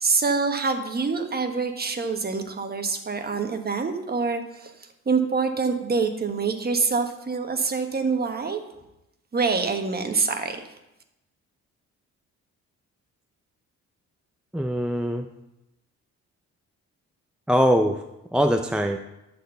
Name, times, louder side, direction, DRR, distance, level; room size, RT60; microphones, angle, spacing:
voice 1, 0.0-8.6 9.3-10.6, right 4 dB, 30° right, 6 dB, 1.3 m, -26 dB
voice 2, 14.5-15.3 17.5-18.0 18.3-19.0, equal, 5° right, 5 dB, 0.5 m, -22 dB
11.5 x 4.4 x 6.9 m, 0.90 s
cardioid pair, 90°, 30 cm